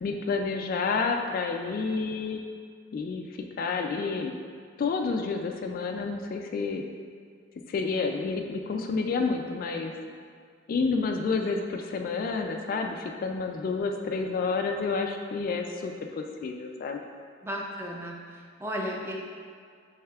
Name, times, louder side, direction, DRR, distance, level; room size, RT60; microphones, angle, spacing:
voice 1, 0.0-2.4 2.9-3.2 3.6-4.3 4.8-6.8 7.7-9.9 10.7-17.0, left 4 dB, 50° left, 3 dB, 0.3 m, -29 dB
voice 2, 17.4-19.1, equal, 15° right, -1 dB, 0.5 m, -34 dB
6.5 x 3.5 x 2.3 m, 2.1 s
head